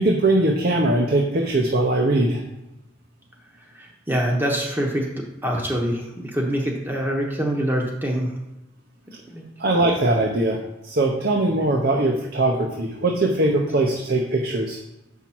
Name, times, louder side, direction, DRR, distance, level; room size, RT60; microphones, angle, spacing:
voice 1, 0.0-2.4 9.6-14.8, right 2 dB, 50° right, 1 dB, 0.8 m, -21 dB
voice 2, 3.7-5.1 5.4-8.3 9.3-9.8, equal, 10° right, -1 dB, 1.0 m, -25 dB
7.2 x 5.6 x 4.6 m, 0.92 s
head